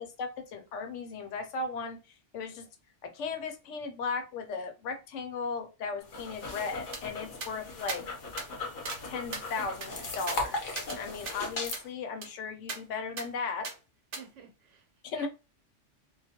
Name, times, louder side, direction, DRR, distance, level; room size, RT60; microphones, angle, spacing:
voice 1, 0.0-2.0 2.3-2.7 3.0-8.0 9.0-13.7 15.0-15.3, left 4 dB, 75° left, 0.9 m, -36 dB
sound 1, 6.0-11.8, left 3 dB, 50° left, 0.8 m, -38 dB
sound 2, 6.9-7.0 7.4-7.5 7.9-8.0 8.4-8.5 8.9-9.0 9.3-11.0 11.3-11.4 11.7-11.9 12.2-12.3 12.7-12.8 13.2-13.3 13.6-13.8 14.1-14.2, right 4 dB, 55° right, 0.7 m, -39 dB
voice 2, 14.1-14.9 15.1-15.3, right 6 dB, 80° right, 1.0 m, -50 dB
2.2 x 2.2 x 2.8 m
omnidirectional pair, 1.3 m